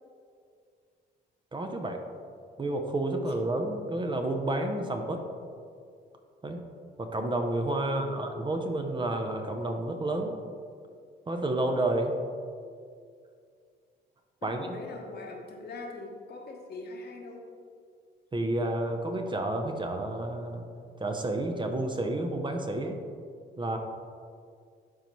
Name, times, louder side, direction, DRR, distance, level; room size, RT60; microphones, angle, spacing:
voice 1, 1.5-2.0 2.6-5.2 6.4-6.6 7.0-10.4 11.3-12.1 14.4-14.8 18.3-20.7 21.0-23.0 23.6-23.8, right 2 dB, 25° right, 4 dB, 0.7 m, -30 dB
voice 2, 7.8-8.2 14.4-17.5, left 3 dB, 55° left, 1 dB, 1.1 m, -42 dB
11.5 x 4.0 x 3.1 m, 2.2 s
cardioid pair, 90°, 20 cm